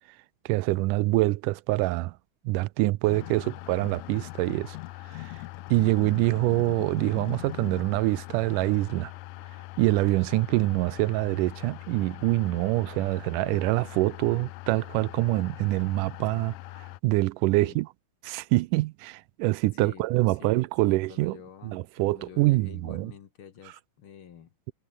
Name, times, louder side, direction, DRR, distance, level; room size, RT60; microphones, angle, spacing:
voice 1, 0.5-2.2 2.5-4.8 5.1-5.4 5.7-9.1 9.8-17.9 18.2-21.4 21.6-23.1, right 20 dB, 80° right, 2.0 m, -25 dB
sound 1, 3.0-17.0, left 19 dB, 80° left, 1.8 m, -41 dB
voice 2, 19.7-24.7, left 8 dB, 50° left, 1.7 m, -48 dB
omnidirectional pair, 4.0 m